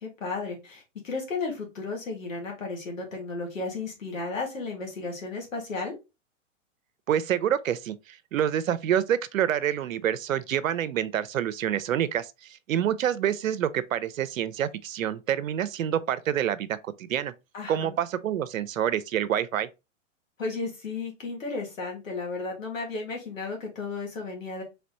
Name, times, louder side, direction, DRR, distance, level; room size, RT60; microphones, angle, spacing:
voice 1, 0.0-6.0 17.5-17.9 20.4-24.6, left 3 dB, 90° left, 2.1 m, -34 dB
voice 2, 7.1-17.3 17.7-19.7, right 10 dB, 90° right, 0.6 m, -27 dB
4.1 x 3.3 x 3.0 m
hypercardioid pair, 120°, 39 cm